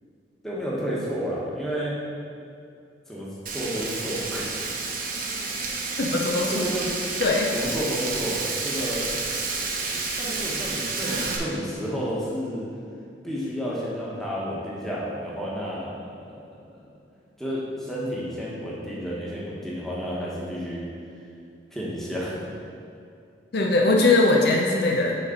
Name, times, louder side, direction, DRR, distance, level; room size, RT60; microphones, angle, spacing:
voice 1, 0.4-2.0 3.1-4.6 6.5-6.9 7.5-9.1 10.2-12.6 13.2-16.9 17.4-20.9 21.7-22.5 24.4-24.5, equal, ahead, -7 dB, 1.3 m, -31 dB
Frying (food), 3.5-11.4, right 3 dB, 50° right, 0.8 m, -30 dB
voice 2, 6.0-6.6 7.2-7.5 23.5-25.2, left 2 dB, 60° left, 0 dB, 0.6 m, -21 dB
6.5 x 4.2 x 5.0 m, 2.5 s
head